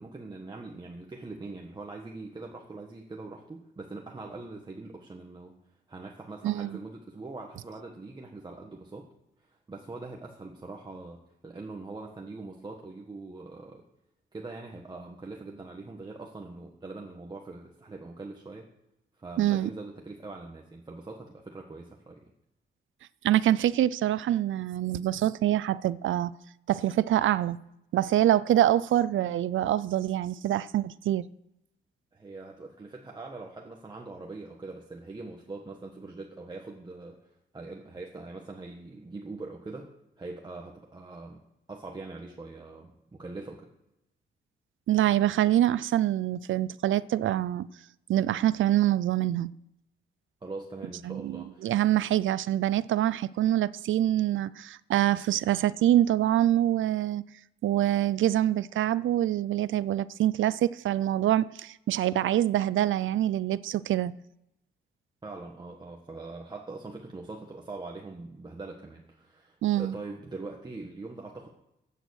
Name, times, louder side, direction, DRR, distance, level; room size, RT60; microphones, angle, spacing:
voice 1, 0.0-5.6 5.9-9.1 9.4-13.8 14.3-18.7 19.2-22.2 32.1-41.4 41.7-43.7 50.4-51.8 65.2-71.5, right 3 dB, 20° right, 1.4 m, -42 dB
voice 2, 6.4-6.8 19.4-19.7 23.2-26.3 26.7-27.6 27.9-31.2 44.9-47.7 48.1-49.5 51.1-57.2 57.6-64.1 69.6-69.9, right 12 dB, 85° right, 0.5 m, -25 dB
15.5 x 9.2 x 6.4 m
wide cardioid pair, 155°, 20 cm